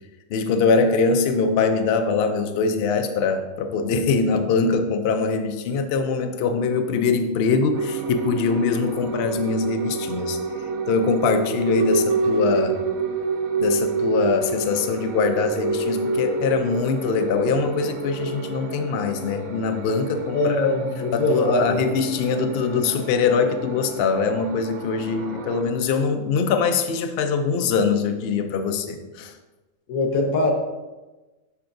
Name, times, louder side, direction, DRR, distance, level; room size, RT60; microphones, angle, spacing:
voice 1, 0.3-10.4 10.9-12.8 13.6-20.6 21.1-29.3, left 5 dB, 60° left, 7 dB, 0.7 m, -23 dB
sound 1, 7.7-25.6, right 3 dB, 80° right, 1.1 m, -28 dB
voice 2, 20.3-21.8 29.9-30.5, left 2 dB, 90° left, 2 dB, 1.4 m, -22 dB
6.9 x 5.7 x 2.6 m, 1.1 s
omnidirectional pair, 1.4 m